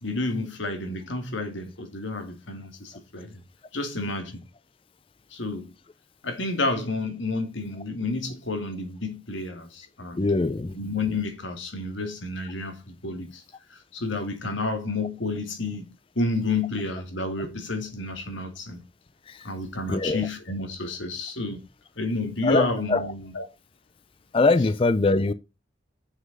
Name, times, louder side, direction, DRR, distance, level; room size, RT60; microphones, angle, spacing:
voice 1, 0.0-3.4 3.7-4.4 5.3-5.7 6.2-10.2 10.7-13.4 13.9-15.9 16.2-18.8 19.4-21.6 22.0-23.5, left 2 dB, 80° left, 2.4 m, -30 dB
voice 2, 10.2-10.7 19.9-20.2 22.4-23.0 24.3-25.3, left 3 dB, 30° left, 0.4 m, -22 dB
7.4 x 6.6 x 5.3 m
head